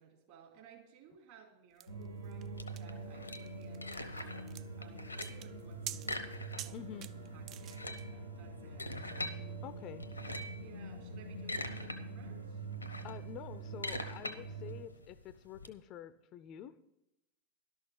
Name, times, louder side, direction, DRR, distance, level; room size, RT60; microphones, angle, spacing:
voice 1, 0.0-9.2 10.6-12.7, right 8 dB, 50° right, 0 dB, 3.2 m, -59 dB
sound 1, 1.8-8.0, right 11 dB, 35° right, 0.4 m, -48 dB
sound 2, 1.9-14.8, right 3 dB, 80° right, 1.5 m, -45 dB
sound 3, 2.6-4.5 4.8-5.5 6.0-6.9 7.2-7.3 7.6-9.4 10.0-10.6 11.2-12.0 12.3-15.7, left 2 dB, 85° left, 0.8 m, -43 dB
voice 2, 6.7-7.1 9.6-10.1 13.0-16.8, left 10 dB, 35° left, 15 dB, 0.5 m, -48 dB
12.0 x 6.4 x 7.3 m, 0.91 s
figure-of-eight pair, 90°, 0 cm